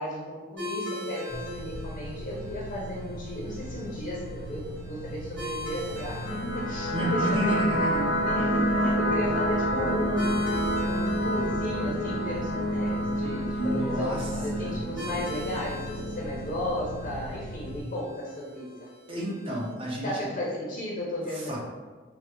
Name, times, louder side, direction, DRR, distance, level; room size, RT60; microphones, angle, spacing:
voice 1, 0.0-7.6 8.1-10.5 10.8-18.9 20.0-21.6, left 1 dB, 40° left, -5 dB, 0.6 m, -34 dB
sound 1, 0.6-19.7, left 1 dB, 80° right, 1.3 m, -42 dB
sound 2, 1.3-17.8, equal, 50° right, 1.3 m, -39 dB
sound 3, 6.2-17.1, equal, 90° left, 0.6 m, -29 dB
voice 2, 6.9-8.1 13.5-14.3 14.5-15.1 19.1-20.3 21.3-21.6, right 1 dB, 30° right, -4 dB, 0.7 m, -31 dB
4.1 x 2.1 x 2.3 m, 1.4 s
head